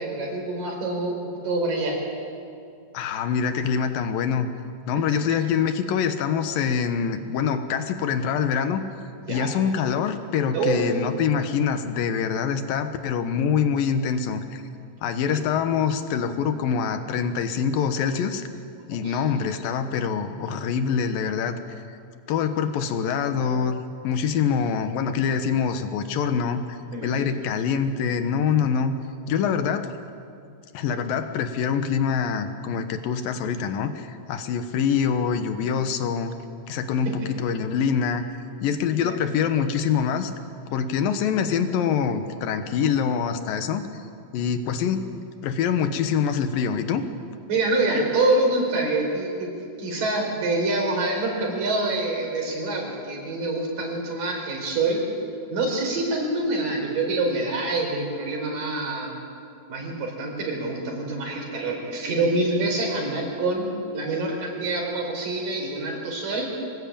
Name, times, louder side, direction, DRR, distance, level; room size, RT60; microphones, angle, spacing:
voice 1, 0.0-2.0 9.2-9.5 10.5-10.9 15.3-15.4 19.0-19.2 26.9-27.3 37.1-37.2 39.0-39.2 47.5-55.0 55.5-59.1 59.7-63.7 63.9-66.5, right 2 dB, 65° right, 1 dB, 6.1 m, -26 dB
voice 2, 2.9-4.5 4.9-8.8 9.3-14.6 15.0-18.4 18.9-21.6 22.3-23.8 24.0-29.0 29.3-29.9 30.7-36.3 36.7-38.2 38.6-40.3 40.7-43.8 44.3-47.0, left 7 dB, 75° left, 9 dB, 2.9 m, -25 dB
25.5 x 19.0 x 8.8 m, 2.5 s
omnidirectional pair, 4.2 m